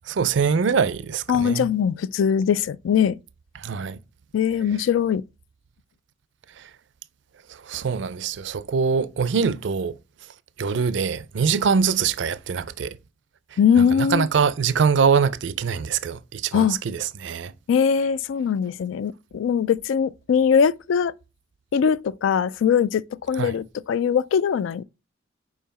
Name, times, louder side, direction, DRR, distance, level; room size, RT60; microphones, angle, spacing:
voice 1, 0.1-1.7 3.6-4.0 6.6-6.7 7.5-10.0 10.6-13.0 13.8-17.5 23.4-23.5, right 6 dB, 70° right, 0.4 m, -23 dB
voice 2, 1.3-3.2 4.3-5.2 13.6-14.3 16.5-16.8 17.7-21.1 21.7-24.8, left 7 dB, 80° left, 0.3 m, -21 dB
5.6 x 4.7 x 4.1 m
head